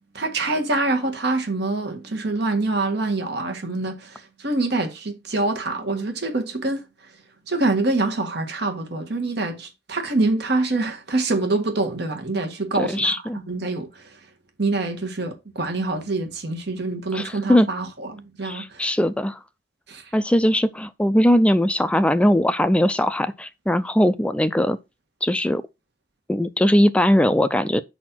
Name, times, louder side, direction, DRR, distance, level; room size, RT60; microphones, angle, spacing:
voice 1, 0.1-6.8 7.5-13.2 13.5-14.1 14.6-18.8 19.9-20.0, right 2 dB, 60° right, 1.5 m, -25 dB
voice 2, 12.7-13.4 17.1-17.7 18.4-19.4 20.1-24.8 25.2-25.6 26.3-27.8, left 1 dB, 5° left, 0.3 m, -20 dB
5.3 x 4.2 x 5.9 m
head